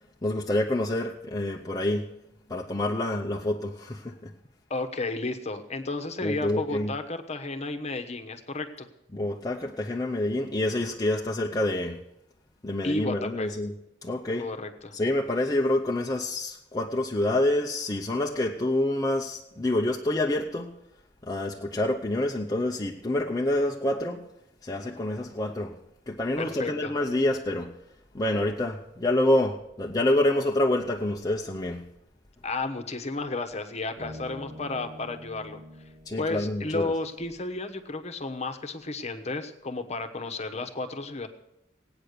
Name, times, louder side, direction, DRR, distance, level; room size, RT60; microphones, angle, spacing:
voice 1, 0.2-2.0 2.5-4.3 6.2-6.9 9.1-12.0 12.6-13.7 14.0-14.5 14.9-20.8 21.2-24.3 24.6-25.8 26.1-27.7 28.1-31.9 36.1-36.9, left 1 dB, 20° left, 0 dB, 0.7 m, -27 dB
voice 2, 4.7-8.9 12.8-13.5 14.4-14.9 26.4-26.9 32.4-35.6 36.2-41.3, left 3 dB, 35° left, 7 dB, 1.1 m, -32 dB
sound 1, 34.0-37.3, left 1 dB, 45° right, 1.6 m, -46 dB
17.5 x 9.0 x 6.7 m, 0.89 s
head